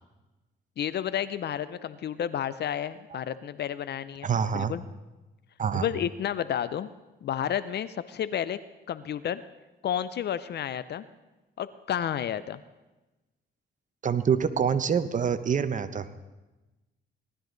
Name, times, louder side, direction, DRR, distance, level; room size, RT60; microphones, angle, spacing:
voice 1, 0.8-4.8 5.7-6.9 7.2-8.6 8.9-9.4 9.8-11.0 11.6-12.6, left 9 dB, 55° left, 15 dB, 0.6 m, -31 dB
voice 2, 4.2-4.7 5.6-5.8 14.0-16.1, right 7 dB, 40° right, 12 dB, 0.9 m, -26 dB
18.5 x 12.5 x 3.9 m, 1.1 s
cardioid pair, 90°, 20 cm